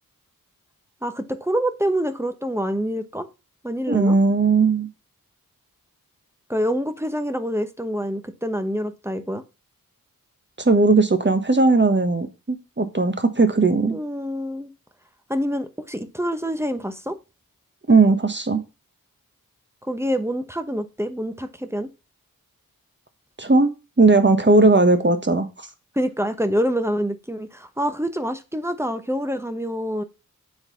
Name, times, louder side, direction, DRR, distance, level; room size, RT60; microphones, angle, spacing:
voice 1, 1.0-3.3 3.6-4.2 6.5-9.4 13.9-14.7 15.3-17.2 19.8-21.9 25.9-30.0, equal, 5° right, 1.0 m, -26 dB
voice 2, 3.9-4.9 10.6-12.3 12.8-14.0 17.9-18.6 23.4-23.7 24.0-25.5, right 3 dB, 30° right, 1.3 m, -17 dB
7.8 x 4.0 x 5.6 m
wide cardioid pair, 45°, 35 cm